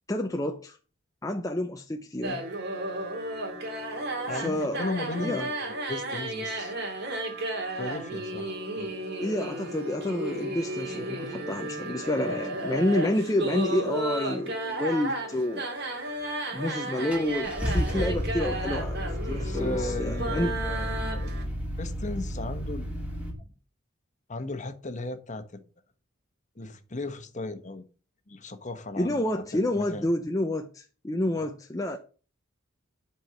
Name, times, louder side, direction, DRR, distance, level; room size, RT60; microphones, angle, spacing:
voice 1, 0.1-0.8 1.2-2.4 4.3-4.8 5.2-5.5 9.2-15.7 16.5-19.0 19.2-20.6 29.0-32.0, left 1 dB, 15° left, 0.6 m, -29 dB
sound 1, 2.2-21.4, right 1 dB, 55° right, 2.6 m, -33 dB
voice 2, 4.3-6.7 7.7-9.0 12.3-12.4 19.4-22.9 24.3-25.6 26.6-27.8 28.3-30.1 31.3-31.5, left 2 dB, 35° left, 1.2 m, -36 dB
Car / Engine starting, 16.4-16.5 17.1-23.3, equal, 5° right, 2.7 m, -32 dB
11.0 x 4.5 x 6.9 m
head